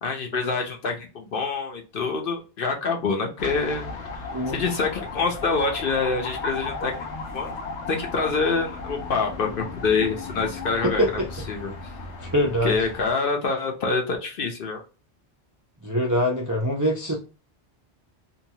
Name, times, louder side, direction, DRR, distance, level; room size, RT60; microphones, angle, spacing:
voice 1, 0.0-3.9 4.5-7.1 7.3-7.5 7.9-11.0 11.5-11.7 12.6-14.8, left 4 dB, 55° left, 0.8 m, -26 dB
sound 1, 3.4-13.1, left 3 dB, 85° left, 1.0 m, -35 dB
voice 2, 10.8-11.3 12.2-12.7 15.8-17.2, equal, 30° right, 0.3 m, -23 dB
2.7 x 2.2 x 2.8 m
omnidirectional pair, 1.2 m